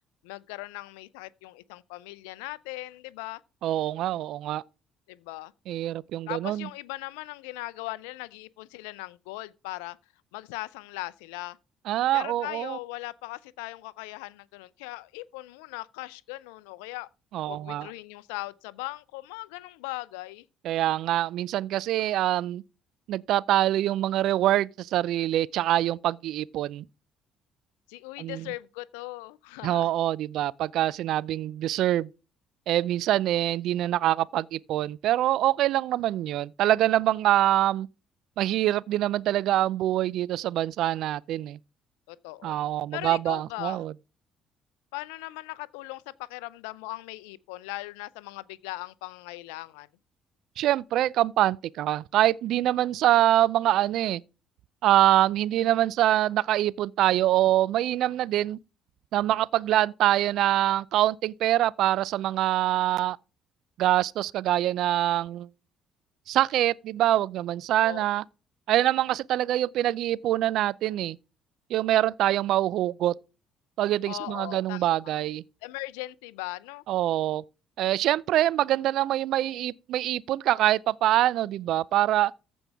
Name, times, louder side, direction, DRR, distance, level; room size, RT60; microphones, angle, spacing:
voice 1, 0.2-3.4 5.1-5.5 6.3-10.0 10.3-11.6 12.1-17.1 17.5-20.5 27.9-29.9 42.1-42.6 42.9-43.8 44.9-49.9 67.8-68.0 74.1-75.2 75.6-76.8, left 19 dB, 80° left, 0.5 m, -39 dB
voice 2, 3.6-4.6 5.7-6.7 11.9-12.8 17.3-17.9 20.6-22.6 23.1-26.8 28.2-28.4 29.6-32.1 32.7-37.9 38.4-41.6 42.4-43.9 50.6-54.2 54.8-58.6 59.1-63.2 63.8-65.5 66.3-68.2 68.7-71.2 71.7-73.1 73.8-75.4 76.9-77.4 77.8-82.3, right 13 dB, 70° right, 0.4 m, -25 dB
14.5 x 5.3 x 3.5 m
hypercardioid pair, 60°, 0 cm